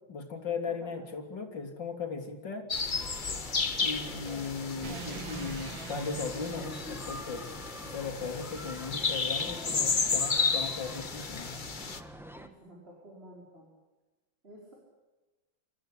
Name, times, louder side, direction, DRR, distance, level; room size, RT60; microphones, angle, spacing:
voice 1, 0.1-2.7 3.8-7.5 7.8-11.5, left 5 dB, 60° left, 4 dB, 3.8 m, -37 dB
sound 1, 2.7-12.0, left 4 dB, 30° left, 1.1 m, -33 dB
sound 2, 2.7-12.5, equal, ahead, 1.5 m, -46 dB
sound 3, 2.9-7.6, right 7 dB, 70° right, 2.1 m, -46 dB
voice 2, 12.3-13.7 14.4-14.7, right 1 dB, 30° right, -2 dB, 5.7 m, -51 dB
28.0 x 14.0 x 10.0 m, 1.1 s
omnidirectional pair, 2.2 m